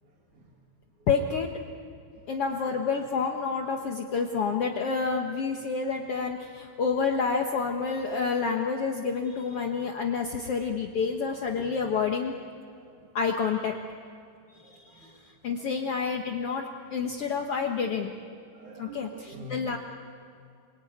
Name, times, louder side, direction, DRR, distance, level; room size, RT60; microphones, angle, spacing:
voice 1, 1.1-1.5 2.3-12.3 13.1-13.8 15.4-16.6 16.9-18.1 18.8-19.8, left 5 dB, 70° left, 2 dB, 1.4 m, -28 dB
voice 2, 2.3-2.6 4.3-4.4 12.7-13.1 14.5-15.2 15.6-15.7 17.3-17.4 18.5-19.6, right 1 dB, 50° right, 0 dB, 3.4 m, -47 dB
28.0 x 23.0 x 9.4 m, 2.3 s
omnidirectional pair, 4.7 m